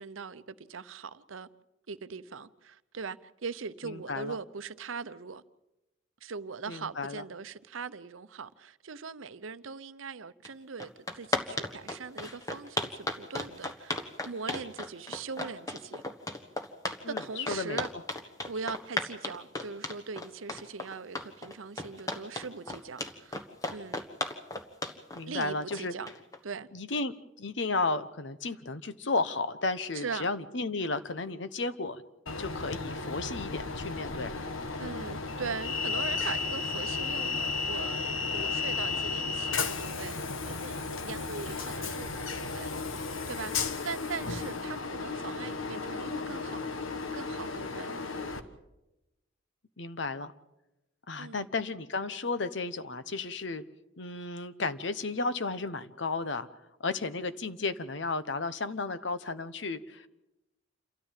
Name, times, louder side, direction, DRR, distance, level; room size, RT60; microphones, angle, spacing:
voice 1, 0.0-1.5 1.9-5.4 6.2-16.0 17.1-17.9 18.5-24.0 25.3-26.1 26.4-26.7 29.9-30.3 34.8-40.2 40.5-46.6 47.1-48.0 51.2-51.5, right 5 dB, 85° right, 0.8 m, -41 dB
voice 2, 3.8-4.4 6.7-7.2 17.0-17.8 25.2-25.9 26.7-32.0 32.4-34.4 49.8-50.3 51.1-53.6 54.0-56.5 56.8-60.1, left 3 dB, 65° left, 1.0 m, -33 dB
sound 1, 10.4-10.5 10.8-26.4, left 2 dB, 15° left, 1.4 m, -35 dB
Train, 32.3-48.4, left 4 dB, 90° left, 1.4 m, -34 dB
28.0 x 13.5 x 7.5 m
head